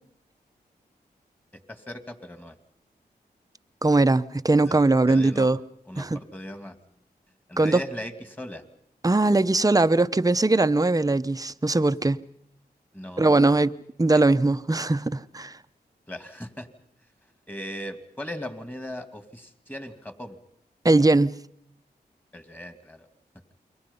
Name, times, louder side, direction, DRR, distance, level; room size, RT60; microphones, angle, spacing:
voice 1, 1.5-2.6 4.6-4.8 5.1-5.5 5.8-6.8 7.5-8.6 12.9-13.5 14.1-14.2 16.1-16.7 17.5-20.4 22.3-23.1, left 1 dB, 10° left, 9 dB, 2.5 m, -38 dB
voice 2, 3.8-5.6 6.0-6.2 7.6-7.8 9.0-12.2 13.2-13.7 14.0-15.6 20.8-21.4, right 2 dB, 20° right, 12 dB, 0.8 m, -20 dB
28.5 x 23.0 x 5.6 m, 0.71 s
cardioid pair, 50°, 17 cm